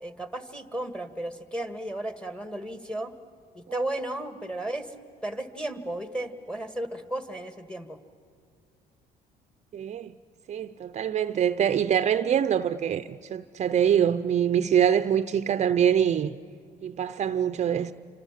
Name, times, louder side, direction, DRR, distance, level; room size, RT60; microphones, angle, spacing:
voice 1, 0.0-3.1 3.5-4.9 5.2-8.0, right 1 dB, 5° left, 1.8 m, -34 dB
voice 2, 9.7-10.1 10.5-16.4 16.8-17.9, right 9 dB, 40° right, 0.6 m, -24 dB
28.0 x 25.5 x 7.4 m
cardioid pair, 110°, 17 cm